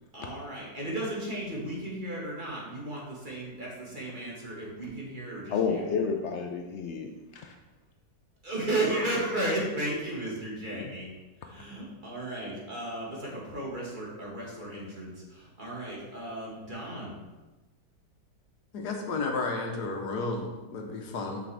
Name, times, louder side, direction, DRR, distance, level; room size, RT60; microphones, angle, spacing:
voice 1, 0.1-5.8 8.4-11.1 11.4-17.2, right 1 dB, 30° right, -5 dB, 1.8 m, -34 dB
voice 2, 5.5-7.5 10.7-10.9, left 6 dB, 90° left, 4 dB, 0.6 m, -31 dB
voice 3, 18.7-21.4, left 3 dB, 70° left, 2 dB, 1.4 m, -32 dB
6.8 x 6.1 x 3.4 m, 1.2 s
omnidirectional pair, 1.9 m